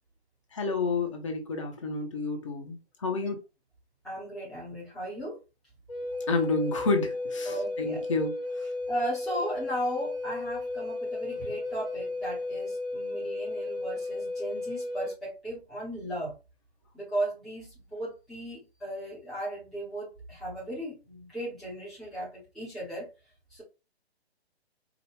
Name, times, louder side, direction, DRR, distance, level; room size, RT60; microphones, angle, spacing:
voice 1, 0.5-3.4 6.3-8.7, left 3 dB, 30° left, 4 dB, 0.7 m, -30 dB
voice 2, 4.0-5.4 7.4-8.2 8.9-16.3 16.9-23.1 23.5-23.6, right 1 dB, ahead, -9 dB, 0.6 m, -36 dB
Wind instrument woodwind instrument, 5.9-15.2, left 2 dB, 55° left, 1.0 m, -34 dB
4.7 x 2.1 x 3.4 m, 0.28 s
figure-of-eight pair, 135°, 33 cm